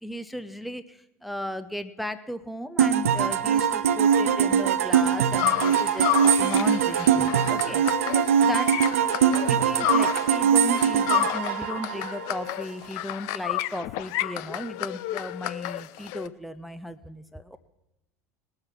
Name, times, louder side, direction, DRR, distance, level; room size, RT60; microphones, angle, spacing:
voice 1, 0.0-7.8 8.4-8.7 9.2-17.6, equal, ahead, 10 dB, 0.6 m, -35 dB
sound 1, 2.8-12.5, right 8 dB, 65° right, 0.6 m, -22 dB
sound 2, 5.4-10.4 10.7-16.3, left 17 dB, 50° left, 0.5 m, -31 dB
voice 2, 7.7-9.1, left 6 dB, 65° left, 0 dB, 2.4 m, -40 dB
20.0 x 6.7 x 5.8 m, 0.93 s
figure-of-eight pair, 75°, 8 cm